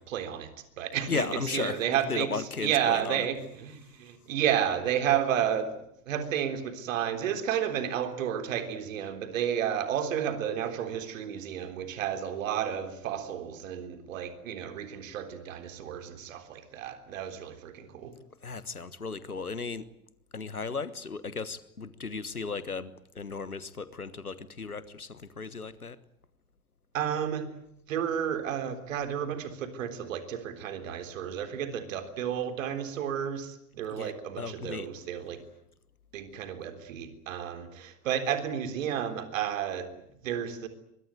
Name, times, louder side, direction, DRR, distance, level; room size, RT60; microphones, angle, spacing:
voice 1, 0.0-5.7 6.1-18.1 26.9-27.5 27.9-35.4 36.1-40.7, right 9 dB, 60° right, 9 dB, 3.7 m, -32 dB
voice 2, 1.1-3.3 18.4-19.9 20.3-26.0 33.9-34.9, left 4 dB, 85° left, 17 dB, 1.4 m, -35 dB
24.0 x 22.5 x 9.3 m, 0.77 s
figure-of-eight pair, 75°, 43 cm